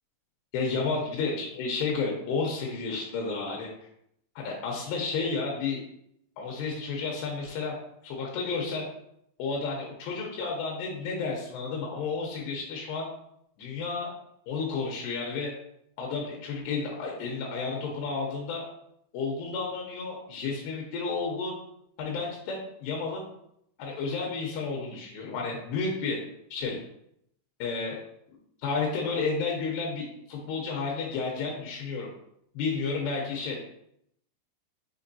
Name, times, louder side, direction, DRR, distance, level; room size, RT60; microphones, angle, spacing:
voice 1, 0.5-3.7 4.4-5.8 6.4-7.8 8.0-8.9 9.4-13.1 13.6-14.1 14.5-15.5 16.0-18.7 19.1-21.6 22.0-23.3 23.8-26.2 26.5-26.8 27.6-28.0 28.6-32.1 32.6-33.6, left 4 dB, 85° left, -1 dB, 2.4 m, -31 dB
6.9 x 2.9 x 2.6 m, 0.74 s
omnidirectional pair, 5.6 m